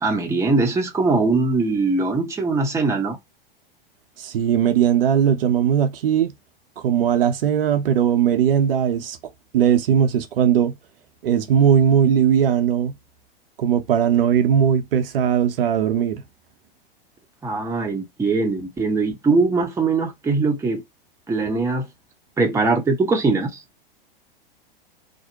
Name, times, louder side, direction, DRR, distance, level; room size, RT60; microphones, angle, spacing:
voice 1, 0.0-3.2 17.4-20.8 21.3-21.9 22.4-23.6, right 3 dB, 10° right, 0.7 m, -21 dB
voice 2, 4.2-6.3 6.8-9.2 9.5-10.7 11.2-12.9 13.6-16.2, right 8 dB, 75° right, 0.7 m, -19 dB
2.5 x 2.1 x 2.8 m
hypercardioid pair, 95°, 29 cm